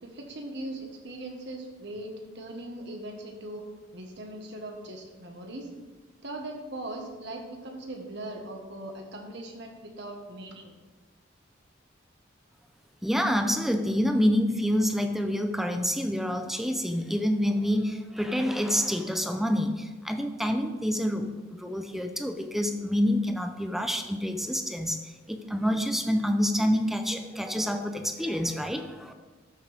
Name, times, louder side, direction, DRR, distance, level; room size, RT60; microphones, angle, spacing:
voice 1, 0.0-2.1 2.3-3.6 3.9-5.7 6.2-10.7, right 1 dB, 60° right, 2 dB, 1.5 m, -40 dB
voice 2, 13.0-25.0 25.3-29.1, equal, ahead, 6 dB, 0.6 m, -27 dB
13.0 x 6.3 x 3.6 m, 1.3 s
head